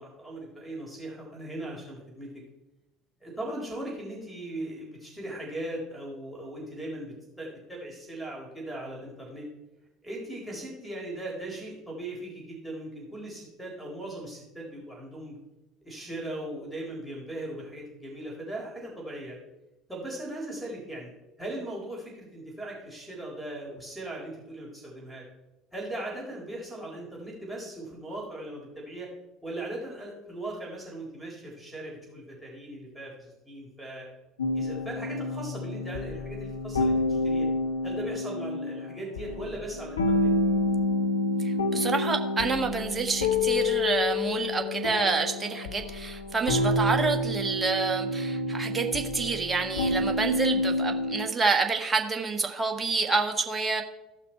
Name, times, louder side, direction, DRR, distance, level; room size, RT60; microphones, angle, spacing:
voice 1, 0.0-2.4 3.2-9.5 10.0-15.4 15.8-19.4 19.9-21.1 21.4-25.2 25.7-29.1 29.4-34.1 34.5-37.5 37.8-40.3, right 1 dB, ahead, -5 dB, 4.1 m, -38 dB
sound 1, 34.4-51.3, left 2 dB, 80° left, 0.8 m, -28 dB
voice 2, 41.4-53.8, right 4 dB, 20° right, 4 dB, 1.4 m, -28 dB
15.0 x 5.9 x 4.5 m, 0.97 s
figure-of-eight pair, 65°, 0 cm